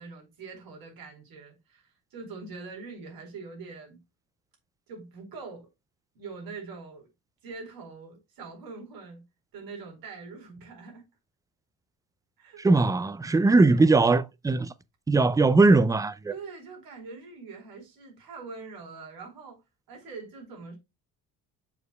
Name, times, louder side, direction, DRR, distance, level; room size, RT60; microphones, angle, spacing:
voice 1, 0.0-4.0 4.9-5.7 6.1-7.1 7.4-9.2 9.5-11.1 12.4-12.6 13.5-13.8 16.3-19.6 19.9-20.8, right 4 dB, 70° right, 4.6 m, -43 dB
voice 2, 12.6-14.7 15.1-16.3, right 3 dB, 10° right, 0.4 m, -20 dB
7.1 x 6.4 x 2.4 m
cardioid pair, 125°, 36 cm